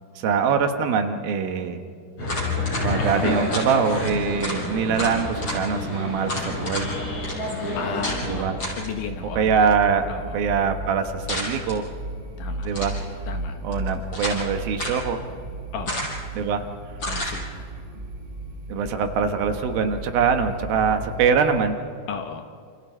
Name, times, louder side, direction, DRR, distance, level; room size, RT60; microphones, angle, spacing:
voice 1, 0.2-1.8 2.8-6.9 8.3-8.6 9.3-10.1 10.3-11.8 12.7-13.0 13.6-15.2 16.4-16.6 18.7-21.8, right 6 dB, 70° right, 7 dB, 2.9 m, -23 dB
sound 1, 2.2-8.4, left 2 dB, 45° left, 6.5 m, -28 dB
sound 2, 2.2-2.8 3.5-3.7 4.1-4.2 4.4-4.6 4.9-5.6 6.3-6.9 7.2-7.4 8.0-8.2 8.6-8.9 11.3-11.8 12.6-13.0 13.7-14.4 14.8-15.0 15.9-16.3 17.0-17.4, left 1 dB, 30° left, 6.1 m, -30 dB
voice 2, 3.0-3.3 7.8-9.5 10.1-10.4 12.4-12.7 13.3-13.6 15.7-16.1 17.1-17.7 22.1-22.5, left 7 dB, 70° left, 6 dB, 2.3 m, -34 dB
sound 3, 8.1-21.7, right 1 dB, 20° right, 1.6 m, -35 dB
28.5 x 28.0 x 4.4 m, 2.3 s
omnidirectional pair, 4.5 m